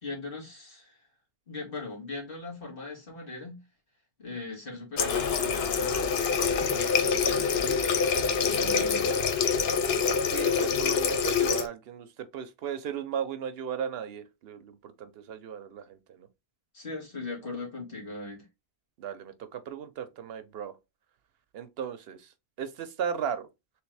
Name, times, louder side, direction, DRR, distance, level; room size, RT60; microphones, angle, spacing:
voice 1, 0.0-1.0 1.5-3.6 4.2-6.2 6.5-7.8 8.4-9.1 16.7-18.5, left 3 dB, 60° left, 2.0 m, -39 dB
Water tap faucet, 5.0-11.7, left 6 dB, 75° left, 0.9 m, -26 dB
voice 2, 10.3-16.3 19.0-20.7 21.5-22.3 22.6-23.5, right 8 dB, 75° right, 0.8 m, -36 dB
3.5 x 3.2 x 3.2 m
omnidirectional pair, 1.0 m